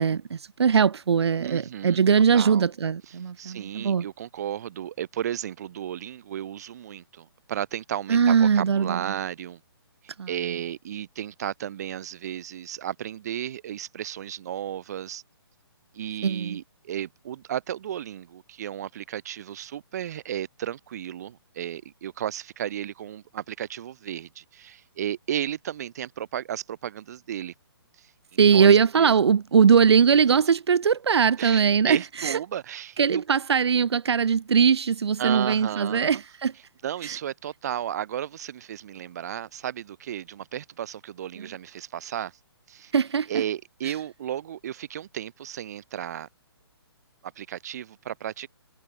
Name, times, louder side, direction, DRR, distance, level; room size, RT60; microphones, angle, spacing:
voice 1, 0.0-4.0 8.1-9.0 10.2-10.3 16.2-16.6 28.4-32.4 33.0-36.5 37.0-37.2 42.9-43.4 43.8-43.9, right 6 dB, 80° right, 0.6 m, -21 dB
voice 2, 1.4-2.0 2.3-2.7 3.1-9.6 10.0-15.2 15.9-27.5 28.0-28.1 28.5-29.2 31.4-33.2 35.2-36.2 36.8-42.4 42.7-42.9 43.3-46.3 47.4-48.5, right 10 dB, 40° right, 2.5 m, -34 dB
hypercardioid pair, 165°, 14 cm